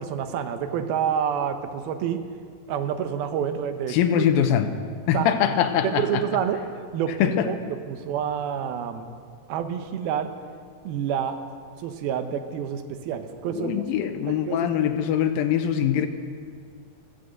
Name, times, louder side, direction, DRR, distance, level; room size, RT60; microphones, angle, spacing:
voice 1, 0.0-2.2 2.7-4.3 5.1-5.3 5.8-9.1 9.5-10.3 10.8-11.4 11.8-13.7 14.3-14.7, right 8 dB, 90° right, 8 dB, 2.9 m, -28 dB
voice 2, 3.9-4.7 5.1-6.2 7.2-7.5 13.5-16.1, left 9 dB, 80° left, 8 dB, 2.6 m, -23 dB
14.0 x 13.5 x 7.9 m, 2.1 s
omnidirectional pair, 4.2 m